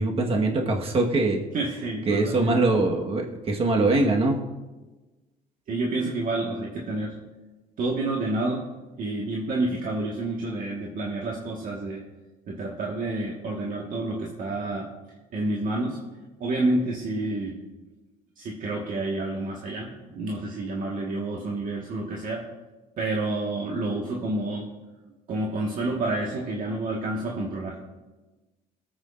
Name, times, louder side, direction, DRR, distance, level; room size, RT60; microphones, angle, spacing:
voice 1, 0.0-1.4 2.1-4.4, right 2 dB, 35° right, 1 dB, 1.5 m, -23 dB
voice 2, 1.5-2.5 5.7-7.1 7.8-8.6 9.0-12.0 12.5-14.9 15.3-16.0 16.4-17.6 18.4-22.4 23.0-24.7 25.3-27.8, right 2 dB, 55° right, -2 dB, 1.7 m, -29 dB
22.0 x 8.1 x 2.6 m, 1.2 s
cardioid pair, 110°, 17 cm